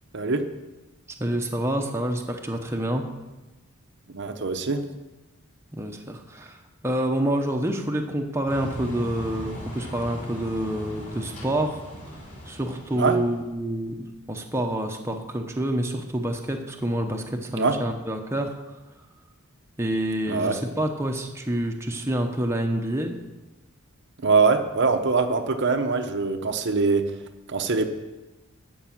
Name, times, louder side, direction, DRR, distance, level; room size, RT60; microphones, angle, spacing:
voice 1, 0.1-0.4 4.1-4.8 12.9-13.2 17.5-17.8 20.3-20.6 24.2-27.1 27.5-27.9, right 4 dB, 50° right, 6 dB, 0.8 m, -23 dB
voice 2, 1.2-3.0 5.7-11.8 12.4-13.9 14.3-18.5 19.8-23.1, right 1 dB, 10° right, 2 dB, 0.8 m, -27 dB
sound 1, 8.5-13.4, equal, 35° left, 3.9 m, -38 dB
13.5 x 5.5 x 7.1 m, 1.1 s
head